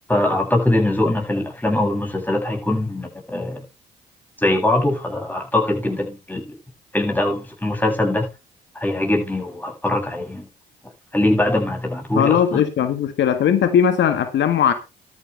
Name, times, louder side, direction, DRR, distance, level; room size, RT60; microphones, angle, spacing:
voice 1, 0.1-3.6 4.4-6.4 6.9-8.3 8.7-10.5 11.1-12.6, left 1 dB, 10° left, 7.2 m, -22 dB
voice 2, 12.2-14.7, left 8 dB, 70° left, 1.6 m, -18 dB
13.0 x 9.5 x 3.3 m
supercardioid pair, 70°, 20 cm